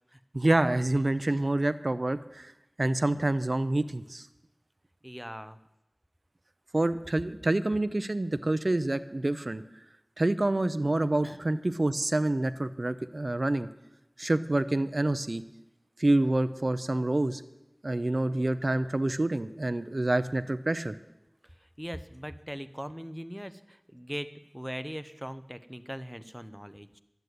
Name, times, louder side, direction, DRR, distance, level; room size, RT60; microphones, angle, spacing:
voice 1, 0.3-2.5 2.8-4.3 6.7-9.6 10.2-13.7 14.2-15.4 16.0-17.4 17.8-21.0, right 2 dB, 60° right, 12 dB, 0.6 m, -27 dB
voice 2, 5.0-5.6 11.2-11.4 21.8-27.0, equal, 5° right, 12 dB, 0.8 m, -40 dB
11.5 x 8.1 x 9.3 m, 0.92 s
wide cardioid pair, 45°, 0 cm